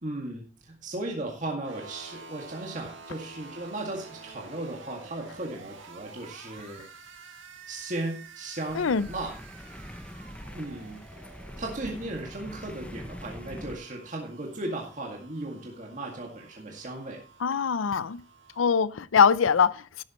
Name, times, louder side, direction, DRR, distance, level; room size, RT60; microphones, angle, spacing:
voice 1, 0.0-6.8 7.7-9.3 10.5-11.3 11.6-17.2, right 2 dB, 40° right, 1.9 m, -36 dB
sound 1, 1.6-18.6, right 4 dB, 80° right, 1.7 m, -49 dB
sound 2, 8.7-13.8, equal, 5° left, 0.6 m, -43 dB
voice 2, 8.8-9.1 17.4-18.2 18.6-20.0, left 6 dB, 90° left, 0.5 m, -23 dB
12.0 x 11.0 x 3.0 m
head